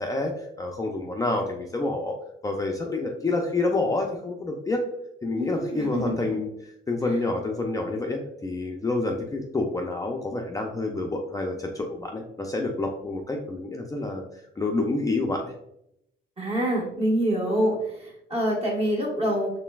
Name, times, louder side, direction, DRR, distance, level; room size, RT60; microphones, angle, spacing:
voice 1, 0.0-2.2 2.4-4.8 5.2-6.5 6.9-14.2 14.6-15.5, left 2 dB, 15° left, 1 dB, 0.4 m, -28 dB
voice 2, 5.3-6.4 16.4-19.5, right 1 dB, 30° right, -2 dB, 1.5 m, -26 dB
4.2 x 3.2 x 2.3 m, 0.79 s
cardioid pair, 90°, 20 cm